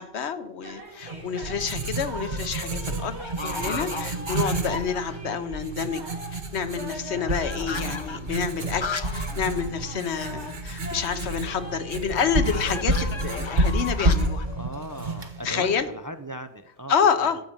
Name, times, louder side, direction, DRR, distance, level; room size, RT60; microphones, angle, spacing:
voice 1, 0.0-6.0 6.3-14.5 15.4-15.9 16.9-17.4, left 6 dB, 80° left, 11 dB, 1.2 m, -28 dB
sound 1, 0.6-13.5, right 1 dB, 80° right, 2.5 m, -41 dB
sound 2, 0.9-1.3 1.9-2.3 2.6-2.7 3.2-5.4 5.7-5.8 6.0-9.4 9.7-9.8 10.1-10.2 12.1-15.8, left 5 dB, 35° left, 0.6 m, -37 dB
Writing, 1.0-15.8, right 1 dB, 45° right, 1.3 m, -30 dB
voice 2, 14.5-17.3, equal, 25° right, 9 dB, 0.5 m, -38 dB
13.0 x 5.2 x 8.7 m, 0.82 s
omnidirectional pair, 1.1 m